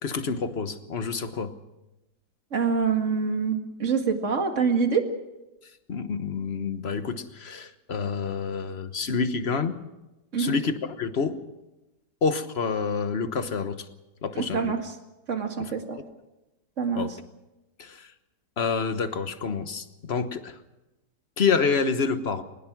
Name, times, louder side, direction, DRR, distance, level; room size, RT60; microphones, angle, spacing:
voice 1, 0.0-1.5 5.9-9.8 10.4-11.4 12.2-13.9 14.2-14.7 15.6-15.7 16.9-17.1 17.8-18.1 18.6-20.6 21.4-22.4, left 5 dB, 40° left, 10 dB, 1.3 m, -28 dB
voice 2, 2.5-5.0 10.3-10.5 14.4-14.8 15.3-16.0 16.8-17.0, right 5 dB, 45° right, 5 dB, 2.3 m, -25 dB
21.5 x 20.0 x 6.1 m, 1.0 s
omnidirectional pair, 1.9 m